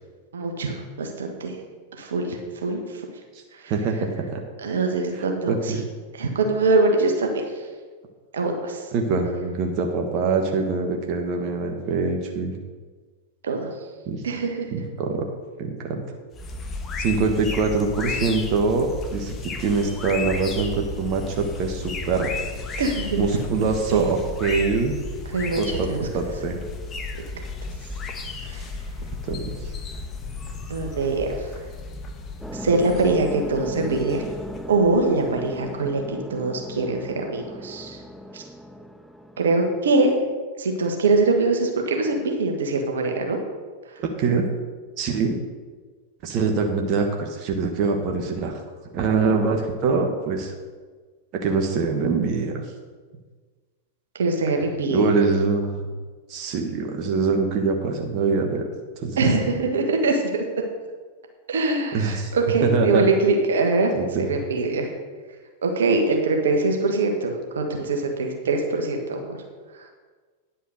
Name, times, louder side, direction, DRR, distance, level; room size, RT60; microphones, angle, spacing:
voice 1, 0.3-1.6 1.9-3.0 3.5-3.7 4.6-5.8 6.1-7.7 8.3-8.9 13.4-13.7 14.2-14.7 22.8-23.2 23.6-24.0 25.3-26.1 28.4-28.7 30.7-31.5 32.5-34.2 34.7-38.0 38.3-38.4 39.4-40.2 40.6-43.4 54.1-55.1 59.2-60.5 61.5-64.9 65.6-69.4 69.7-69.9, right 3 dB, 75° right, 3 dB, 1.5 m, -23 dB
voice 2, 3.7-4.4 5.2-5.8 8.9-12.6 14.1-14.2 14.7-15.2 15.6-16.0 17.0-22.5 23.2-24.9 25.6-25.9 26.1-26.6 29.2-29.7 44.0-44.5 45.0-45.4 46.2-48.6 48.9-50.5 51.3-52.6 54.9-55.8 56.3-58.7 59.0-59.2 61.9-62.3 62.7-63.0 63.9-64.2, right 4 dB, 45° right, 3 dB, 1.4 m, -24 dB
sound 1, 16.3-35.8, left 3 dB, 25° left, 1.2 m, -34 dB
sound 2, 32.4-39.8, equal, ahead, 0.5 m, -37 dB
10.0 x 5.5 x 6.5 m, 1.4 s
hypercardioid pair, 95°, 0 cm